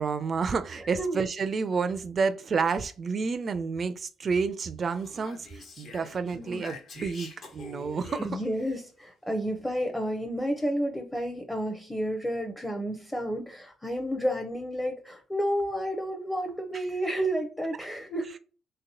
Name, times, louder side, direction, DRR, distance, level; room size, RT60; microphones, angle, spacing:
voice 1, 0.0-8.4 16.7-16.8, right 5 dB, 40° right, 0.3 m, -30 dB
Speech, 4.9-8.8, left 3 dB, 55° left, 1.0 m, -46 dB
voice 2, 6.3-6.6 8.2-18.3, equal, 10° left, 0.6 m, -31 dB
3.1 x 2.9 x 2.7 m
cardioid pair, 105°, 0 cm